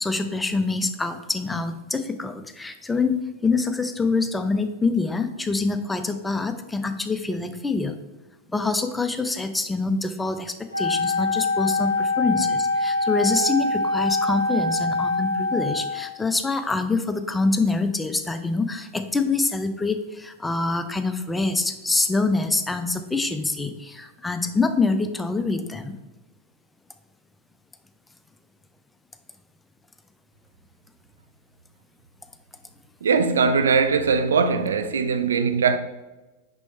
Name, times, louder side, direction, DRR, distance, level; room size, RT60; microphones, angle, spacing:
voice 1, 0.0-7.9 8.5-26.0, left 3 dB, 10° left, 0.5 m, -25 dB
Wind instrument woodwind instrument, 10.7-16.2, left 3 dB, 85° left, 0.5 m, -24 dB
voice 2, 33.0-35.8, right 5 dB, 65° right, 0.4 m, -20 dB
6.2 x 5.3 x 3.2 m
figure-of-eight pair, 90°, 0 cm